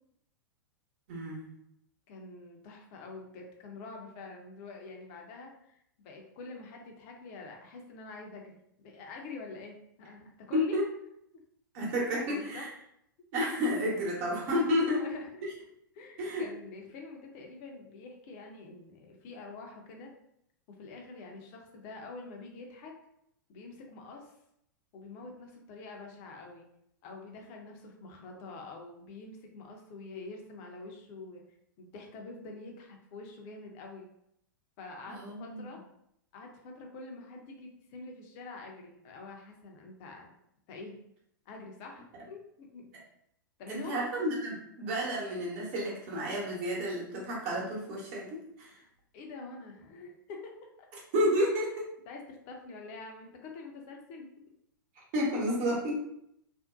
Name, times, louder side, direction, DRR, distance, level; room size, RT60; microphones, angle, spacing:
voice 1, 1.1-1.5 10.5-10.8 11.7-12.7 13.3-15.0 16.2-16.5 35.1-35.6 43.7-48.7 51.1-51.9 55.1-56.0, equal, 45° right, -3 dB, 1.0 m, -31 dB
voice 2, 2.1-10.8 12.1-12.7 14.8-15.4 15.9-20.1 20.7-22.9 23.5-24.3 24.9-26.7 27.0-31.4 31.8-34.1 34.8-35.8 36.3-40.3 40.7-41.0 41.5-42.9 43.6-44.0 48.7-48.9 49.1-50.5 52.1-54.3, left 3 dB, 40° left, 1 dB, 0.6 m, -46 dB
2.6 x 2.1 x 2.4 m, 0.75 s
figure-of-eight pair, 100°, 11 cm